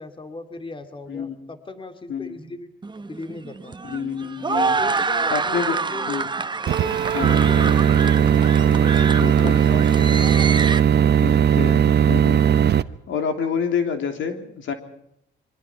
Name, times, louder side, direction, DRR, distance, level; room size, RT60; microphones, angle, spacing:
voice 1, 0.0-2.7 3.1-3.8 4.5-6.3 6.6-10.7, left 3 dB, 25° left, 8 dB, 2.5 m, -38 dB
sound 1, 2.8-10.8, right 4 dB, 25° right, 1.0 m, -27 dB
voice 2, 3.8-4.7 5.3-5.8 6.1-6.3 7.1-7.4 9.2-9.5 11.2-12.8 13.1-14.7, left 7 dB, 75° left, 6 dB, 3.4 m, -28 dB
sound 2, 6.7-12.8, right 8 dB, 55° right, 0.9 m, -17 dB
26.0 x 23.5 x 4.6 m, 0.76 s
cardioid pair, 90°, 20 cm